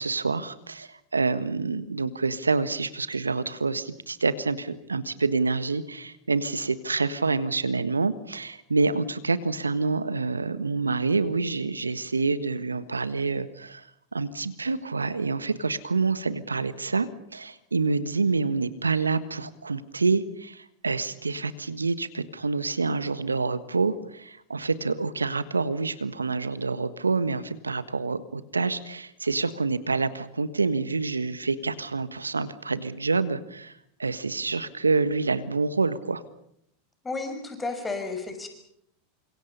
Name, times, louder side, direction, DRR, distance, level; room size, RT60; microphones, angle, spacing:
voice 1, 0.0-13.9 14.1-33.7 34.0-36.2, right 4 dB, 90° right, 13 dB, 1.5 m, -27 dB
voice 2, 37.0-38.5, left 3 dB, 15° left, 5 dB, 6.2 m, -32 dB
30.0 x 26.0 x 5.5 m, 0.72 s
figure-of-eight pair, 90°, 0 cm